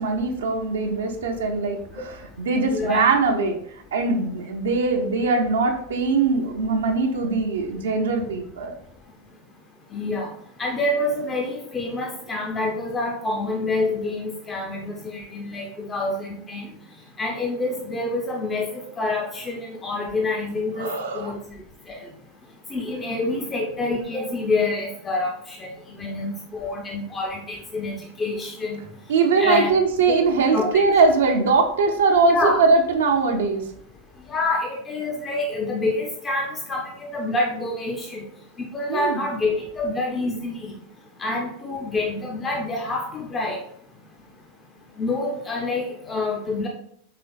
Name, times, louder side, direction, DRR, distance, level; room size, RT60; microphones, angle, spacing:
voice 1, 0.0-8.8 20.8-21.3 29.1-33.7 38.9-39.2, right 4 dB, 70° right, 3 dB, 0.5 m, -21 dB
voice 2, 2.6-3.0 9.9-10.3 10.6-16.7 17.2-21.4 21.9-22.1 22.7-25.7 26.0-28.8 29.4-29.8 30.1-30.2 30.5-31.0 32.3-32.6 34.3-38.2 38.6-40.7 41.2-43.6 45.0-46.7, left 2 dB, 25° left, 1 dB, 0.6 m, -27 dB
4.9 x 3.0 x 2.3 m, 0.65 s
figure-of-eight pair, 85°, 0 cm